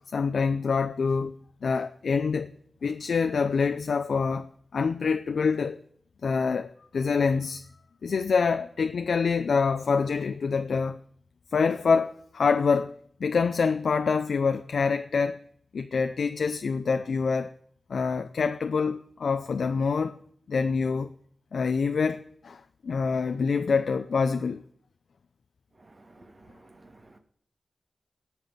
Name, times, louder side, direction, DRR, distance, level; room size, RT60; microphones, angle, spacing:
voice 1, 0.1-1.3 1.6-2.5 2.8-5.8 6.2-7.6 8.0-11.0 11.5-15.4 15.7-17.5 17.9-20.2 20.5-21.1 21.5-24.6, left 5 dB, 80° left, 0.7 m, -26 dB
voice 2, 25.8-27.2, right 2 dB, 45° right, 2.5 m, -54 dB
17.5 x 6.1 x 9.3 m
cardioid pair, 60°, 0 cm